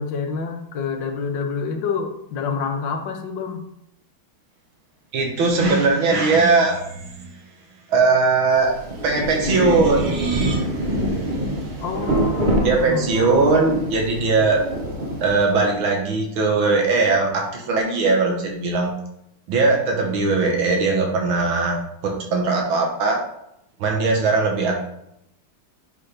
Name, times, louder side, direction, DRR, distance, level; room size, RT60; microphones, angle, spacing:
voice 1, 0.0-3.6 11.8-13.1, left 5 dB, 70° left, 5 dB, 1.6 m, -27 dB
voice 2, 5.1-7.3 7.9-11.7 12.6-14.6 15.2-18.9 19.5-23.2 23.8-24.8, right 3 dB, 80° right, 0 dB, 1.9 m, -20 dB
Rain, 8.5-15.7, right 1 dB, 30° right, 0.9 m, -25 dB
10.0 x 4.2 x 3.3 m, 0.80 s
omnidirectional pair, 2.2 m